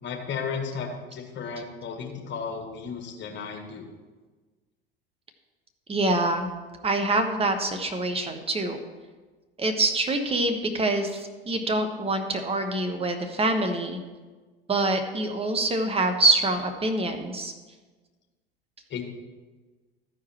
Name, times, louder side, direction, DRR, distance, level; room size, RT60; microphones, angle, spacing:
voice 1, 0.0-3.9 18.9-19.0, left 5 dB, 40° left, 2 dB, 1.8 m, -34 dB
voice 2, 5.9-6.5 6.8-8.8 9.6-14.0 14.7-17.5, right 2 dB, 20° right, 5 dB, 1.2 m, -25 dB
14.0 x 4.8 x 4.4 m, 1.3 s
hypercardioid pair, 75°, 30 cm